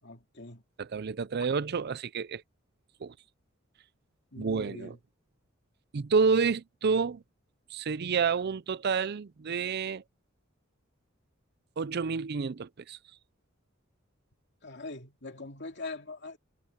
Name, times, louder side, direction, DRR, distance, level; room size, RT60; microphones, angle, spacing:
voice 1, 0.0-0.6 4.3-5.0 14.6-16.4, left 2 dB, 60° left, 2.7 m, -42 dB
voice 2, 0.8-2.4 3.0-3.1 4.4-4.9 5.9-7.2 7.7-10.0 11.8-13.0, right 5 dB, 55° right, 0.5 m, -29 dB
head